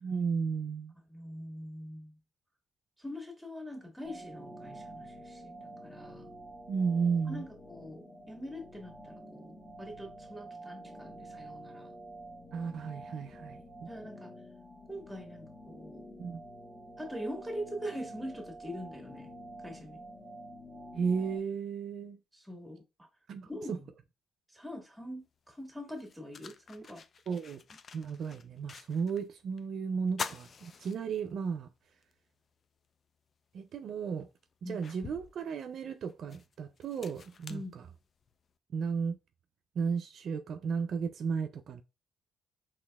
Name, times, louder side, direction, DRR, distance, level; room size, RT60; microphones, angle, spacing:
voice 1, 0.0-0.9 6.7-7.4 12.5-13.9 16.2-16.4 20.9-22.2 23.3-23.8 27.3-27.6 27.9-31.7 33.5-34.3 34.6-37.8 38.7-39.1 39.8-41.8, right 6 dB, 65° right, 0.3 m, -34 dB
voice 2, 1.1-2.2 3.0-6.3 7.3-11.9 13.9-14.3 14.9-16.0 17.0-19.3 19.6-20.0 22.3-23.1 23.5-23.9 24.5-27.0 34.6-34.8 37.5-37.7, equal, 5° right, 1.4 m, -43 dB
sound 1, 4.0-21.4, right 1 dB, 20° left, 1.1 m, -48 dB
sound 2, 25.3-25.4 25.9-29.3 29.6-29.7 30.1-31.6 32.0-32.1 33.5-33.6 34.2-38.4, left 5 dB, 50° left, 0.3 m, -46 dB
3.9 x 2.9 x 2.2 m
cardioid pair, 90°, 0 cm